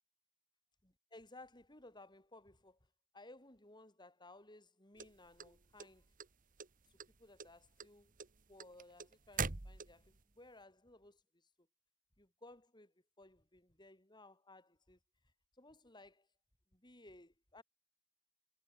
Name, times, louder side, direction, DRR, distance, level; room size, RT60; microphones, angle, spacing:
voice 1, 0.8-2.8 3.1-6.1 6.9-8.1 8.5-11.7 12.2-15.0 15.6-16.3 16.7-17.6, left 2 dB, 20° left, 5.3 m, -59 dB
sound 1, 5.0-6.3 6.6-7.1 7.4-10.2, right 5 dB, 40° right, 1.3 m, -42 dB
head